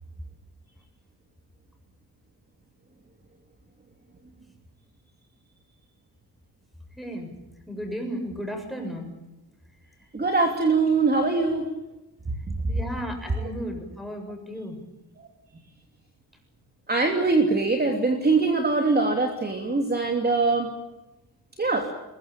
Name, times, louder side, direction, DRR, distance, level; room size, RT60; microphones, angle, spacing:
voice 1, 7.0-7.3 7.7-9.1 12.7-14.8, equal, ahead, 4 dB, 7.2 m, -34 dB
voice 2, 10.1-11.7 16.9-20.7 21.6-21.8, right 3 dB, 25° right, 3 dB, 3.1 m, -22 dB
23.0 x 22.0 x 9.1 m, 0.98 s
wide cardioid pair, 140°, 41 cm